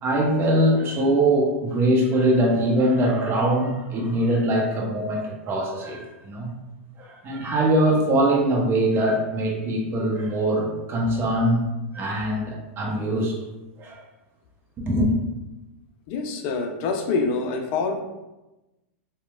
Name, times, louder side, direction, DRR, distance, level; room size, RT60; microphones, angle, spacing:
voice 1, 0.0-6.5 7.0-11.7 11.9-13.3 13.8-14.0 14.8-15.1, right 1 dB, 30° right, -1 dB, 0.7 m, -22 dB
voice 2, 16.1-18.0, left 4 dB, 50° left, 4 dB, 0.4 m, -26 dB
2.8 x 2.1 x 2.3 m, 1.0 s
hypercardioid pair, 105°, 7 cm